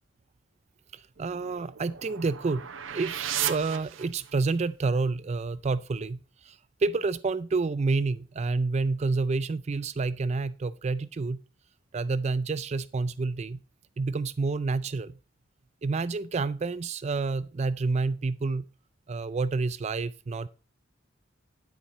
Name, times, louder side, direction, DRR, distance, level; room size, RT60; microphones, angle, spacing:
voice 1, 0.9-2.6 2.9-11.4 11.9-13.6 14.0-15.2 15.8-18.6 19.1-20.5, right 3 dB, 35° right, 0.4 m, -29 dB
sound 1, 1.2-4.6, right 10 dB, 75° right, 0.7 m, -35 dB
9.7 x 8.8 x 3.0 m
head